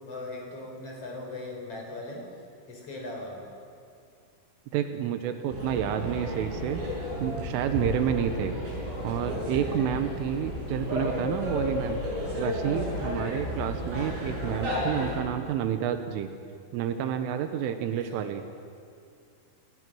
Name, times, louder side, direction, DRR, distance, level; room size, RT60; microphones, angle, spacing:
voice 1, 0.0-2.3 2.7-3.5 8.3-8.6 17.9-18.3, left 2 dB, 30° left, 1 dB, 4.9 m, -39 dB
voice 2, 4.7-6.8 7.2-8.6 9.0-12.0 12.4-16.3 16.7-18.4, right 9 dB, 85° right, 8 dB, 3.6 m, -29 dB
sound 1, 5.5-15.1, left 1 dB, 65° right, 8.8 m, -32 dB
29.0 x 23.0 x 6.2 m, 2.4 s
omnidirectional pair, 5.6 m